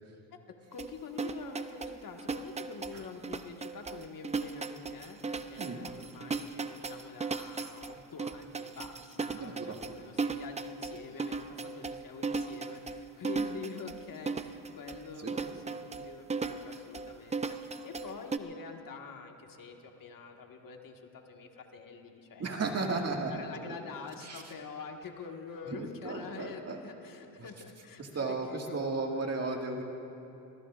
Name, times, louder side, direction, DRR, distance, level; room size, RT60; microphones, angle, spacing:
voice 1, 0.7-29.3, left 5 dB, 50° left, 3 dB, 1.7 m, -46 dB
sound 1, 0.8-18.4, right 4 dB, 15° right, 0.5 m, -37 dB
voice 2, 9.3-9.8 15.2-15.3 22.4-23.3 23.7-23.8 24.2-24.4 25.7-26.8 28.1-29.8, right 3 dB, 35° right, 1 dB, 1.9 m, -34 dB
23.0 x 20.5 x 2.5 m, 2.9 s
cardioid pair, 90°, 43 cm